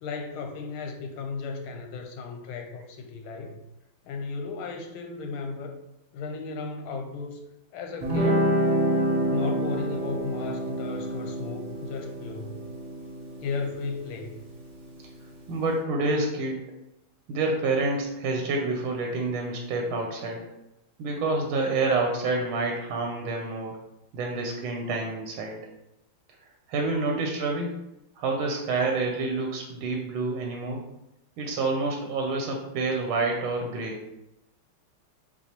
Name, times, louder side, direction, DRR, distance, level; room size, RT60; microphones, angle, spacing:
voice 1, 0.0-3.6 4.0-5.8 6.1-7.4 7.7-8.6 9.3-12.6 13.4-14.4, left 4 dB, 90° left, 4 dB, 1.5 m, -35 dB
Guitar, 8.0-15.1, right 1 dB, 30° right, 0.9 m, -28 dB
voice 2, 15.5-16.6 17.3-20.4 21.0-23.7 24.1-25.6 26.7-27.8 28.2-30.8 31.4-34.0, right 3 dB, 85° right, 1 dB, 1.5 m, -28 dB
6.8 x 2.4 x 2.9 m, 0.88 s
omnidirectional pair, 2.3 m